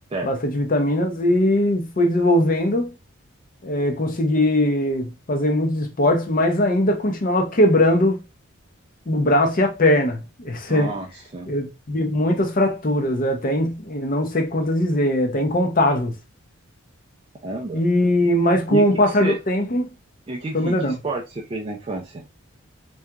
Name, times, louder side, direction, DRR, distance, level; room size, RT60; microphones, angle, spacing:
voice 1, 0.2-2.9 3.6-8.2 9.1-10.9 11.5-16.1 17.7-19.9 20.5-20.9, left 1 dB, 40° left, 0.5 m, -20 dB
voice 2, 10.7-11.5 17.4-17.8 18.7-19.4 20.3-22.3, right 2 dB, 25° right, 0.3 m, -30 dB
2.8 x 2.3 x 2.3 m
head